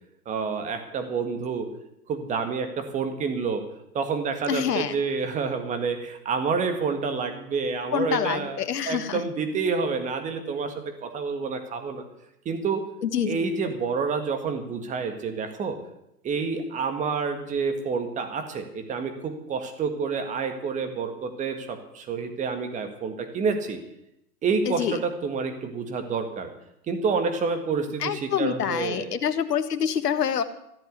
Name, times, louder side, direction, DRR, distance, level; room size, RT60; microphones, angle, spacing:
voice 1, 0.3-1.7 2.1-3.6 3.9-8.6 8.9-10.7 11.0-12.0 12.5-12.8 13.2-15.8 16.2-23.8 24.4-26.5 26.9-29.1, right 5 dB, 15° right, 6 dB, 1.8 m, -28 dB
voice 2, 4.5-5.0 7.9-9.2 13.0-13.3 24.7-25.0 28.0-30.4, left 8 dB, 70° left, 10 dB, 1.6 m, -26 dB
14.5 x 7.8 x 9.6 m, 0.82 s
hypercardioid pair, 140°, 48 cm